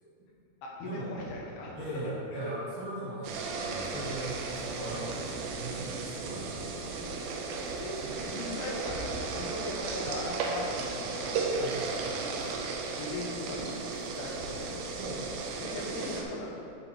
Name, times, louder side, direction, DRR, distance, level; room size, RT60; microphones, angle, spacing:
voice 1, 0.6-2.0 2.3-2.5 3.7-3.8 5.8-5.9 6.9-7.1 7.8-12.1 12.5-12.7 13.0-13.6 14.2-14.9 15.6-16.5, left 2 dB, 75° left, -3 dB, 3.1 m, -39 dB
voice 2, 1.7-7.0 8.1-8.2 10.5-10.6 11.6-11.8 15.0-15.2, right 1 dB, 65° right, -7 dB, 2.3 m, -40 dB
sound 1, 3.2-16.2, right 4 dB, 90° right, 2.9 m, -35 dB
10.5 x 5.1 x 4.4 m, 2.4 s
omnidirectional pair, 4.7 m